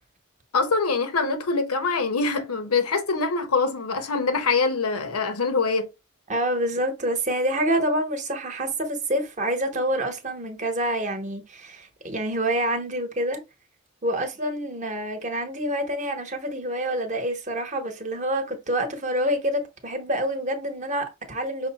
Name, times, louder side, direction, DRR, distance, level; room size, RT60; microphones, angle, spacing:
voice 1, 0.5-5.9, left 4 dB, 80° left, 0.9 m, -24 dB
voice 2, 6.3-13.4 14.0-21.7, right 1 dB, 35° right, 1.0 m, -27 dB
6.0 x 2.1 x 4.0 m
head